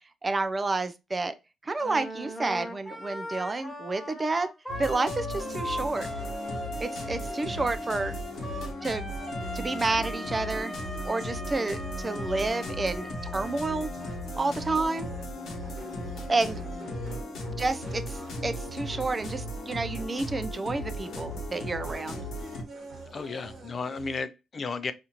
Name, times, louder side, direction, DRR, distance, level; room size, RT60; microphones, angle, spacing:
voice 1, 0.2-1.3 1.6-4.5 4.8-6.1 6.8-8.1 8.8-9.0 9.5-10.7 11.0-13.9 14.4-15.1 16.3-16.6 17.6-22.2, right 3 dB, 25° right, 0.4 m, -30 dB
Wind instrument woodwind instrument, 1.8-14.3, left 1 dB, 10° left, 0.9 m, -39 dB
sound 1, 4.7-22.6, left 1 dB, 70° left, 0.9 m, -37 dB
sound 2, 5.4-24.2, right 2 dB, 45° right, 1.3 m, -45 dB
voice 2, 23.1-24.9, left 4 dB, 40° left, 0.4 m, -34 dB
4.1 x 2.5 x 2.8 m
cardioid pair, 90°, 0 cm